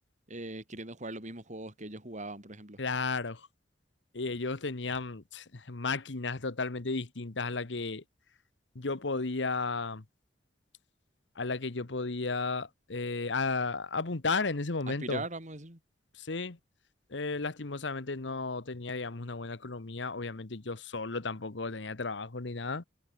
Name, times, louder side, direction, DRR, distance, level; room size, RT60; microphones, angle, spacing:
voice 1, 0.3-2.8 14.9-15.8, right 2 dB, 40° right, 6.9 m, -40 dB
voice 2, 2.8-3.5 4.1-8.0 8.7-10.0 11.4-15.2 16.2-16.6 17.1-22.8, left 3 dB, 75° left, 1.2 m, -34 dB
head